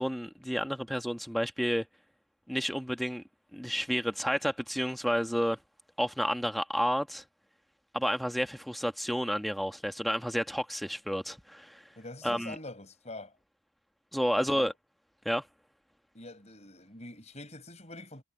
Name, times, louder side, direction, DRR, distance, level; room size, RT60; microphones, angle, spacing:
voice 1, 0.0-1.8 2.5-3.2 3.5-5.6 6.0-7.2 7.9-11.8 12.2-12.6 14.1-14.7 15.2-15.4, equal, ahead, 1.2 m, -30 dB
voice 2, 12.0-13.3 14.4-14.7 16.1-18.2, left 2 dB, 30° left, 5.8 m, -45 dB
head